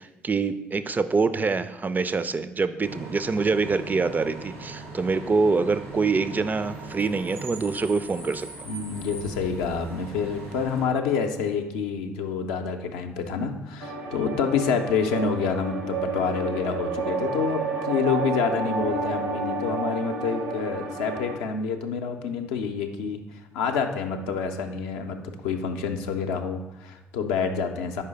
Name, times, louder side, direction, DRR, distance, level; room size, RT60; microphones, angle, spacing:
voice 1, 0.0-8.5, right 4 dB, 25° right, 13 dB, 0.3 m, -25 dB
Bus / Idling / Screech, 2.8-10.8, right 3 dB, 90° right, 1.2 m, -40 dB
voice 2, 8.7-23.2 23.5-28.0, left 6 dB, 70° left, 5 dB, 0.5 m, -28 dB
sound 1, 13.8-21.4, right 4 dB, 70° right, 0.7 m, -30 dB
5.5 x 4.9 x 3.9 m, 1.0 s
figure-of-eight pair, 45°, 7 cm